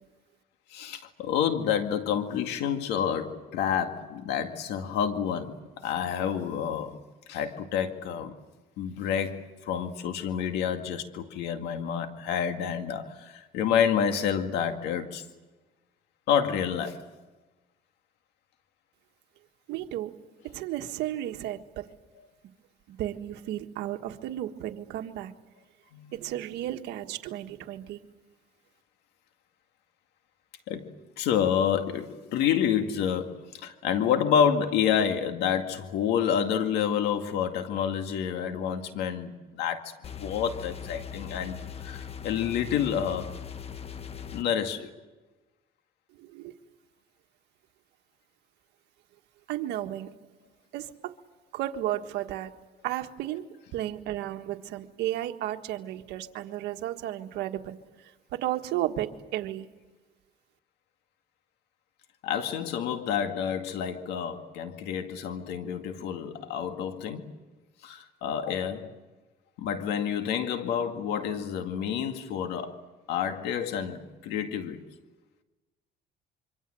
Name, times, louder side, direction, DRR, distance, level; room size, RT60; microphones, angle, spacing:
voice 1, 0.7-7.0 7.3-8.3 8.8-15.2 16.3-17.0 25.9-26.2 30.7-39.9 40.2-43.3 44.3-44.9 62.2-67.4 67.8-69.0 69.6-72.8 73.1-74.8, left 8 dB, 90° left, 7 dB, 2.1 m, -29 dB
voice 2, 19.7-20.1 20.5-21.9 22.9-25.3 26.1-28.0 46.2-46.5 49.5-50.1 50.7-51.1 51.5-52.5 52.8-53.4 53.7-59.7, right 13 dB, 85° right, 6 dB, 1.5 m, -33 dB
sound 1, 40.0-44.4, left 7 dB, 35° left, 1.3 m, -40 dB
26.0 x 24.5 x 7.7 m, 1.2 s
cardioid pair, 110°, 17 cm